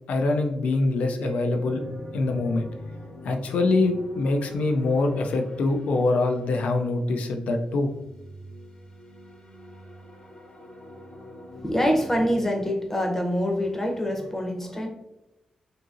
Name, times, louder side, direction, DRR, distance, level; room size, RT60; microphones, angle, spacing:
voice 1, 0.1-1.8 2.1-2.7 3.2-7.9, left 2 dB, 85° left, 4 dB, 0.4 m, -24 dB
Mallet percussion, 1.2-3.8, right 3 dB, 85° right, 0.3 m, -43 dB
sound 1, 1.6-6.9 7.9-12.3, left 1 dB, 50° left, 0.8 m, -44 dB
voice 2, 11.6-14.9, equal, 15° left, 2 dB, 0.6 m, -25 dB
2.7 x 2.7 x 2.4 m, 0.97 s
cardioid pair, 65°, 2 cm